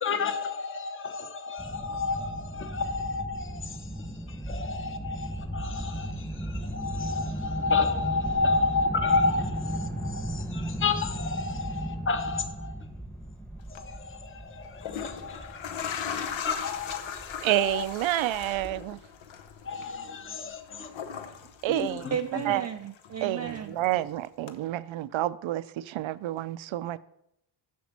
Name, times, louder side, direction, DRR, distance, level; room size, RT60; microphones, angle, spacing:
voice 1, 0.0-3.5 4.5-5.2 5.5-6.1 6.7-12.7 14.2-14.3 14.6-14.7 15.0-15.5 16.4-17.0 17.4-17.9 19.7-20.9 21.7-22.5, left 4 dB, 25° left, 0.9 m, -30 dB
sound 1, 1.6-19.0, right 1 dB, 5° left, 1.1 m, -36 dB
sound 2, 13.6-13.8 14.6-22.7 23.0-24.0 24.5-24.6, left 7 dB, 70° left, 1.0 m, -39 dB
voice 2, 17.4-19.0 21.6-22.1 22.5-22.6 23.2-27.0, right 14 dB, 75° right, 0.6 m, -29 dB
voice 3, 22.1-23.8, right 8 dB, 35° right, 0.4 m, -33 dB
7.3 x 6.2 x 7.3 m
cardioid pair, 115°, 47 cm